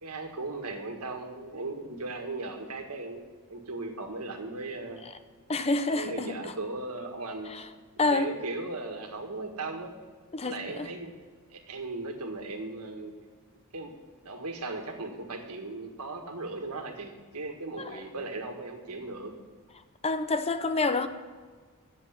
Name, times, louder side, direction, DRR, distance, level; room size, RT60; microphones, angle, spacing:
voice 1, 0.0-3.2 3.5-5.0 5.9-7.5 7.9-10.0 10.4-11.1 11.5-13.1 13.7-13.9 14.2-19.3, right 2 dB, 85° right, 3 dB, 1.7 m, -37 dB
voice 2, 5.5-6.4 7.5-7.6 8.0-8.3 10.3-10.9 17.8-18.0 20.0-21.1, left 3 dB, 30° left, 10 dB, 0.6 m, -28 dB
8.1 x 7.4 x 8.7 m, 1.5 s
head